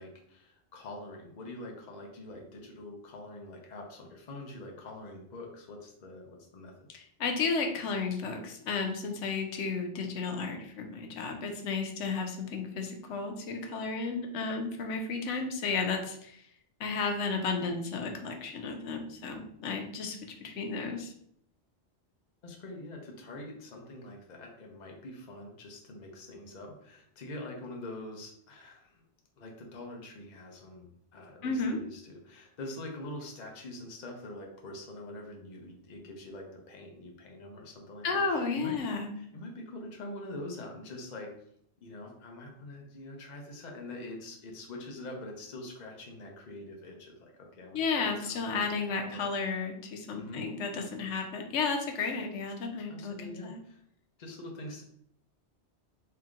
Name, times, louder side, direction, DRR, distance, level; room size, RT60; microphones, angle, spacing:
voice 1, 0.0-6.9 22.4-29.0 29.4-38.7 39.2-41.3 41.8-49.3 50.1-50.4 52.9-53.8 54.2-54.8, left 1 dB, 45° left, 1 dB, 0.8 m, -44 dB
voice 2, 6.9-16.4 16.8-21.1 31.4-31.8 38.0-39.1 47.7-53.6, left 4 dB, 90° left, 4 dB, 1.0 m, -33 dB
3.3 x 2.9 x 3.6 m, 0.69 s
omnidirectional pair, 1.2 m